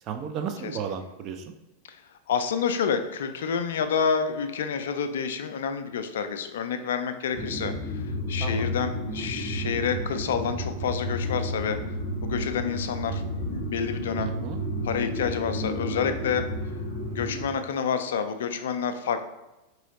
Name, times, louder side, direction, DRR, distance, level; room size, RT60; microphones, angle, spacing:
voice 1, 0.0-1.5 8.4-8.7 14.2-14.6, right 7 dB, 35° right, 6 dB, 0.5 m, -34 dB
voice 2, 2.3-11.8 12.2-14.3 14.8-16.4 17.1-19.2, left 6 dB, 60° left, 9 dB, 0.4 m, -29 dB
sound 1, 7.3-17.5, equal, 55° right, 1.4 m, -31 dB
4.7 x 3.0 x 2.9 m, 0.99 s
figure-of-eight pair, 90°, 0 cm